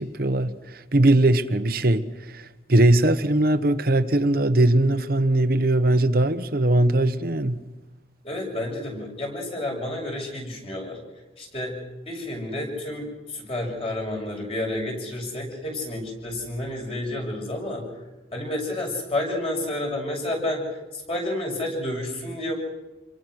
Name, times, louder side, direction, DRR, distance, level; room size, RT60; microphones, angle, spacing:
voice 1, 0.0-7.6, right 1 dB, 55° right, 1.1 m, -20 dB
voice 2, 8.2-11.0 11.4-11.8 12.1-17.8 18.3-20.6 20.9-22.5, left 1 dB, 30° left, 6.7 m, -30 dB
28.5 x 22.5 x 6.4 m
head